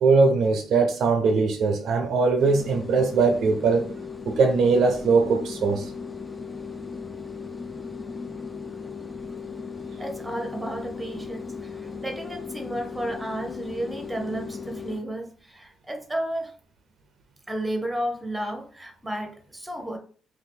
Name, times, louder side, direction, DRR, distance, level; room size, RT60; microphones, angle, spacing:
voice 1, 0.0-3.9 4.3-5.9, right 4 dB, 70° right, 0.4 m, -21 dB
sound 1, 2.4-15.0, left 5 dB, 20° left, 0.4 m, -37 dB
voice 2, 10.0-16.5 17.5-20.0, right 1 dB, 5° right, 0.7 m, -32 dB
2.7 x 2.4 x 3.6 m
cardioid pair, 110°, 0 cm